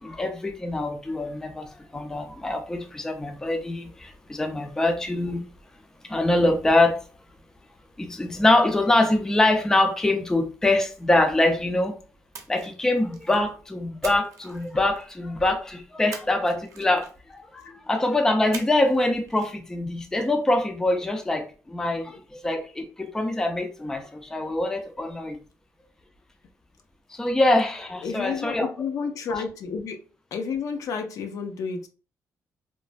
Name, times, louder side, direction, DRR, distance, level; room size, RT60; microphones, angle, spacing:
voice 1, 0.0-5.4 6.0-7.0 8.0-11.9 12.5-25.4 27.1-28.7 29.3-29.4, left 2 dB, 10° left, 0.3 m, -24 dB
Splash splatter, 12.3-13.5 14.0-15.2 16.1-17.4 18.5-19.0 19.3-19.5, right 6 dB, 70° right, 0.6 m, -42 dB
voice 2, 28.0-30.0 30.3-31.9, left 5 dB, 70° left, 0.5 m, -30 dB
3.1 x 2.1 x 2.4 m
cardioid pair, 140°, 6 cm